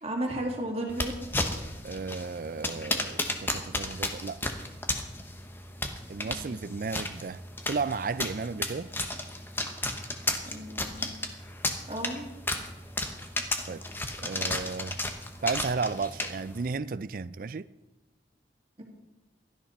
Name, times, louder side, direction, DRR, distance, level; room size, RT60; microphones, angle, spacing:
voice 1, 0.0-1.1 6.2-6.5 10.4-11.0 11.9-12.3 18.8-18.9, right 1 dB, 35° right, 2.5 m, -34 dB
sound 1, 0.9-16.7, left 2 dB, 10° left, 1.1 m, -34 dB
voice 2, 1.8-4.5 6.1-7.4 7.7-8.9 13.7-13.8 14.2-15.0 15.4-17.7, right 4 dB, 50° right, 0.4 m, -33 dB
16.5 x 12.5 x 4.3 m
head